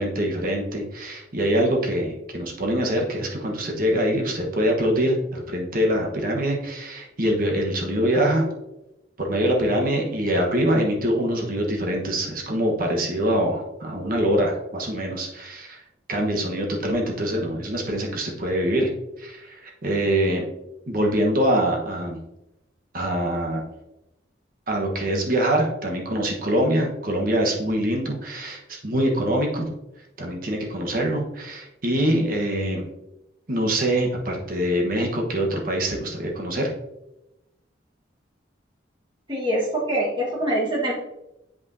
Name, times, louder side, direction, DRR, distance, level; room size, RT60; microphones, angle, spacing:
voice 1, 0.0-8.5 9.2-15.8 16.1-18.9 19.2-20.4 20.9-22.2 22.9-23.6 24.7-29.7 30.2-32.9 33.5-36.7, right 1 dB, 50° right, 0 dB, 1.2 m, -24 dB
voice 2, 39.3-40.9, right 1 dB, 25° right, -4 dB, 1.6 m, -24 dB
8.1 x 5.5 x 2.7 m, 0.92 s
head